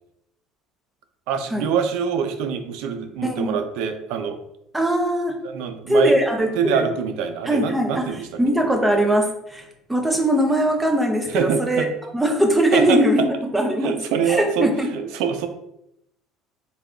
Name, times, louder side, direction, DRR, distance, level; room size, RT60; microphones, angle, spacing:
voice 1, 1.3-4.4 5.4-6.1 6.5-8.3 11.3-11.9 12.7-13.3 13.8-15.5, right 7 dB, 75° right, 7 dB, 0.4 m, -25 dB
voice 2, 3.2-3.6 4.7-5.4 5.9-6.9 7.5-11.9 12.1-14.0 14.3-14.9, right 1 dB, 10° right, 3 dB, 0.6 m, -21 dB
3.4 x 2.3 x 3.7 m, 0.80 s
cardioid pair, 125°, 0 cm